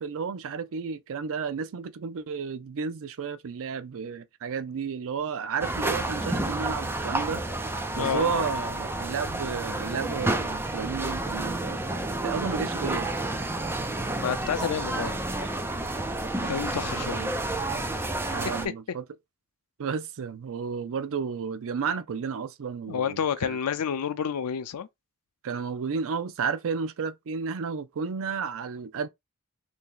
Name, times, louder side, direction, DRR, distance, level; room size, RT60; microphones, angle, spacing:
voice 1, 0.0-7.4 7.7-11.8 12.2-13.1 16.4-17.3 18.3-19.0 19.8-23.6 25.4-29.1, right 6 dB, 65° right, 0.4 m, -32 dB
sound 1, 5.6-18.7, right 2 dB, 10° right, 0.5 m, -30 dB
voice 2, 7.9-8.4 14.2-15.2 16.5-17.2 17.7-17.8 22.9-24.9, left 7 dB, 90° left, 0.5 m, -29 dB
2.8 x 2.7 x 3.8 m
head